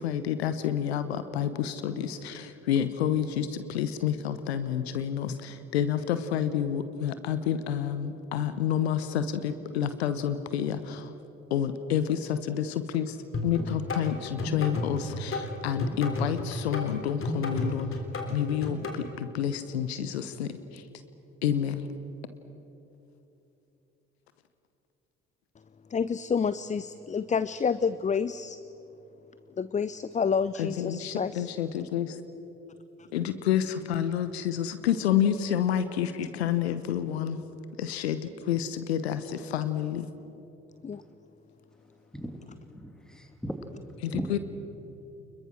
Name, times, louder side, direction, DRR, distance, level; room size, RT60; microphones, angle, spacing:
voice 1, 0.0-11.1 11.5-13.2 13.4-18.0 18.3-20.8 21.4-21.9 30.6-32.2 33.1-37.4 37.8-40.1 44.0-44.4, left 9 dB, 80° left, 12 dB, 0.9 m, -29 dB
sound 1, 13.3-19.0, left 2 dB, 40° left, 3.6 m, -33 dB
voice 2, 25.9-28.6 29.6-31.5 40.8-41.0, left 6 dB, 25° left, 15 dB, 0.6 m, -29 dB
voice 3, 42.1-42.4 42.7-43.8 44.1-44.4, right 1 dB, ahead, 6 dB, 2.8 m, -37 dB
29.0 x 22.0 x 6.2 m, 3.0 s
figure-of-eight pair, 45°, 32 cm